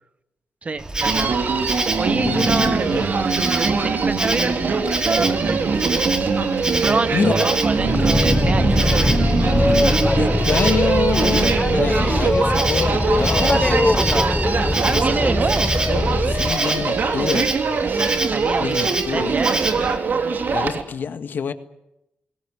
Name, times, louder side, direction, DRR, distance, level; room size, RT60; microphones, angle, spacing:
voice 1, 0.6-1.4 2.0-5.6 6.8-9.3 14.8-15.7 17.8-19.6, right 3 dB, 40° right, 10 dB, 1.9 m, -27 dB
Insect, 0.8-20.0, right 2 dB, 25° right, 2.5 m, -28 dB
Human voice, 1.0-20.8, right 4 dB, 65° right, 3.2 m, -22 dB
voice 2, 2.2-3.1 7.1-7.3 7.9-8.0 10.1-14.1 14.7-15.4 15.9-17.5 18.6-19.3 20.5-21.5, left 6 dB, 70° left, 10 dB, 1.7 m, -27 dB
Boat Water vehicle, 7.8-16.6, left 1 dB, 15° left, 0.8 m, -21 dB
23.0 x 18.5 x 9.8 m, 0.87 s
cardioid pair, 60°, 3 cm